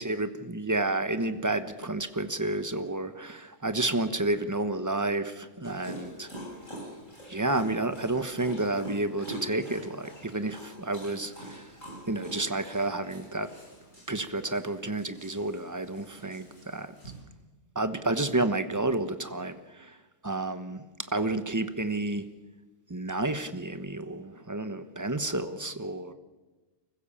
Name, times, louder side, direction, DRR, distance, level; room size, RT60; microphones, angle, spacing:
voice 1, 0.0-6.3 7.3-11.7 12.1-13.5 14.1-16.9 17.7-20.0 20.2-22.3 22.9-26.1, right 2 dB, 15° right, 1.0 m, -30 dB
Dog, 5.6-17.2, right 1 dB, 75° left, 8.3 m, -45 dB
29.5 x 15.5 x 7.3 m
omnidirectional pair, 1.3 m